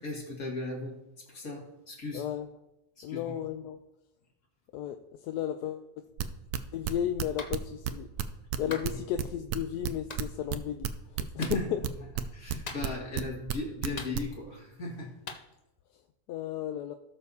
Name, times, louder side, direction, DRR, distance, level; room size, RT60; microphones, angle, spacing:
voice 1, 0.0-2.3 3.0-3.3 8.6-9.0 11.4-11.7 12.0-12.1 12.3-15.1, left 2 dB, 60° left, -2 dB, 2.8 m, -37 dB
voice 2, 2.1-2.5 3.0-3.8 4.7-5.0 5.2-5.9 6.7-8.1 8.6-10.9 11.7-11.8 16.3-16.9, left 10 dB, 85° left, 6 dB, 1.2 m, -33 dB
sound 1, 6.2-11.9 12.1-13.5 13.8-14.2, right 11 dB, 75° right, 1.1 m, -31 dB
Clapping, 7.4-7.6 8.7-8.9 10.1-10.2 11.4-11.6 12.7-13.1 14.0-14.5 15.3-15.4, left 4 dB, 40° left, 0.6 m, -41 dB
17.5 x 6.7 x 2.8 m, 0.91 s
omnidirectional pair, 1.7 m